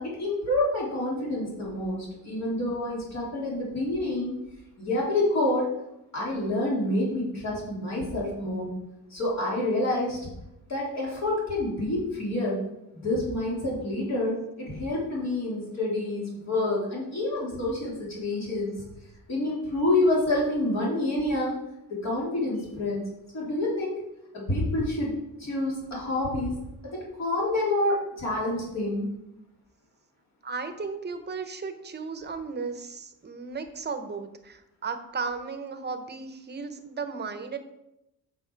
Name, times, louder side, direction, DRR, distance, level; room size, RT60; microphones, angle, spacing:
voice 1, 0.0-4.4 4.8-5.7 6.1-8.7 9.1-10.2 10.7-12.6 12.9-18.7 19.3-21.6 21.9-23.0 23.3-24.0 24.3-25.1 25.4-26.5 26.8-29.1, left 1 dB, 50° left, -5 dB, 3.3 m, -28 dB
voice 2, 30.4-37.6, right 4 dB, 30° right, 8 dB, 0.9 m, -35 dB
8.8 x 6.5 x 4.6 m, 0.88 s
cardioid pair, 135°, 35 cm